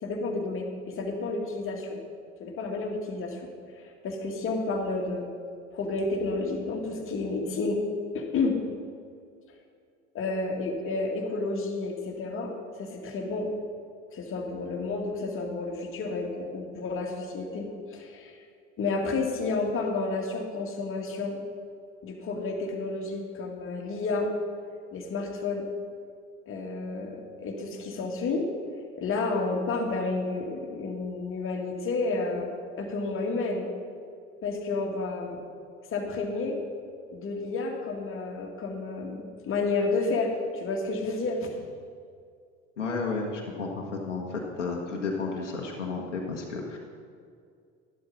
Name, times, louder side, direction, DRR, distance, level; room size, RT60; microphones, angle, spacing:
voice 1, 0.0-2.0 2.4-5.3 5.7-7.8 8.1-8.6 10.1-13.5 14.1-18.4 18.8-21.4 22.0-24.3 24.9-25.7 26.5-28.5 29.0-32.5 32.8-33.7 34.4-35.4 35.9-36.6 37.1-41.5, left 3 dB, 35° left, 1 dB, 2.1 m, -31 dB
voice 2, 42.8-46.8, left 4 dB, 80° left, -1 dB, 1.3 m, -32 dB
12.0 x 12.0 x 4.0 m, 2.2 s
figure-of-eight pair, 70°, 35 cm